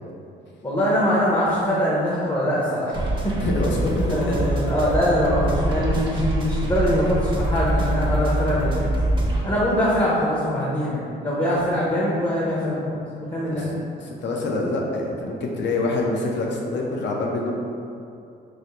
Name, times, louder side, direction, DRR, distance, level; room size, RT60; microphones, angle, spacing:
voice 1, 0.6-3.4 4.1-8.9 9.4-13.7, equal, 25° left, -6 dB, 0.7 m, -23 dB
sound 1, 2.9-9.4, right 1 dB, 25° right, 0.6 m, -24 dB
voice 2, 3.4-4.5 13.5-13.7 14.0-17.5, left 2 dB, 65° left, -1 dB, 0.6 m, -26 dB
4.7 x 2.0 x 2.9 m, 2.6 s
cardioid pair, 90°, 20 cm